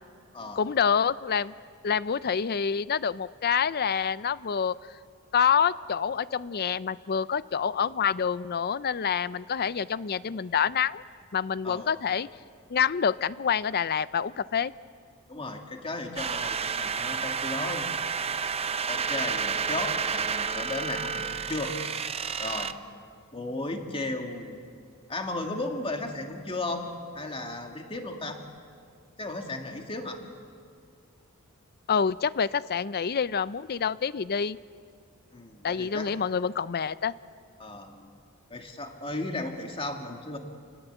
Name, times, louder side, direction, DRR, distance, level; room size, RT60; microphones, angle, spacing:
voice 1, 0.6-1.5 1.8-4.8 5.3-11.0 11.3-12.3 12.7-14.7 31.9-34.6 35.6-37.1, left 7 dB, 45° left, 17 dB, 0.5 m, -27 dB
voice 2, 15.3-17.9 18.9-21.7 22.4-22.8 23.3-24.6 25.1-28.4 29.2-30.2 35.3-36.1 37.6-38.1 38.5-40.4, left 2 dB, 25° left, 3 dB, 2.1 m, -35 dB
sound 1, 16.2-22.7, right 6 dB, 30° right, 0.6 m, -30 dB
29.0 x 19.5 x 8.1 m, 2.2 s
head